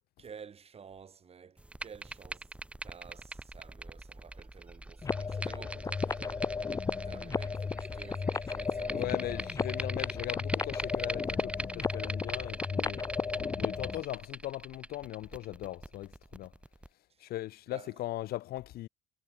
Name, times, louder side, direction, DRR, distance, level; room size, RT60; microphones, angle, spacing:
voice 1, 0.2-2.6 2.8-6.5 7.0-9.9 17.1-17.3 17.7-18.0, right 6 dB, 35° right, 4.0 m, -52 dB
sound 1, 1.6-16.9, right 1 dB, 5° right, 0.9 m, -42 dB
sound 2, 5.0-14.0, left 5 dB, 20° left, 0.5 m, -34 dB
voice 2, 8.9-16.5 17.2-18.9, left 15 dB, 70° left, 0.6 m, -39 dB
cardioid pair, 110°, 17 cm